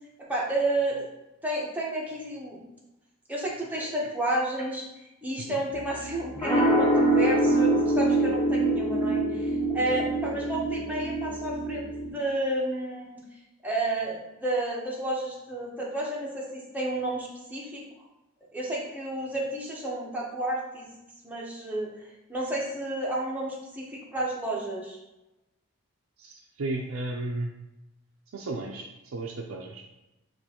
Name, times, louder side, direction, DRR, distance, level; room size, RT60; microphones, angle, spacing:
voice 1, 0.3-1.0 1.4-2.6 3.3-4.8 5.2-13.2 13.6-17.8 18.5-20.9 21.2-21.9 22.3-25.0, right 1 dB, 10° right, -4 dB, 1.0 m, -31 dB
sound 1, 5.7-12.1, right 1 dB, 15° left, 0.7 m, -25 dB
voice 2, 26.2-27.5 28.3-29.8, right 2 dB, 75° right, -2 dB, 0.5 m, -34 dB
6.8 x 2.5 x 2.8 m, 0.96 s
head